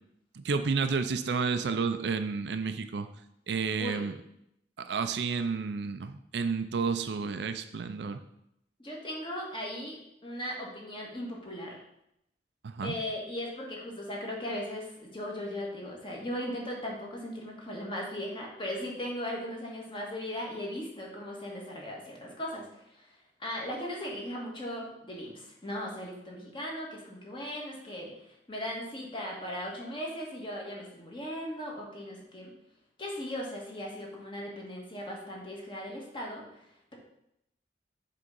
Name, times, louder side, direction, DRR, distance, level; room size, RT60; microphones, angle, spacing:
voice 1, 0.3-3.1 3.5-4.1 4.8-8.2 12.6-12.9, right 5 dB, 65° right, 9 dB, 0.5 m, -31 dB
voice 2, 8.8-11.8 12.8-32.5 33.0-36.9, left 1 dB, 30° left, -2 dB, 1.6 m, -38 dB
7.7 x 3.7 x 5.4 m, 0.80 s
head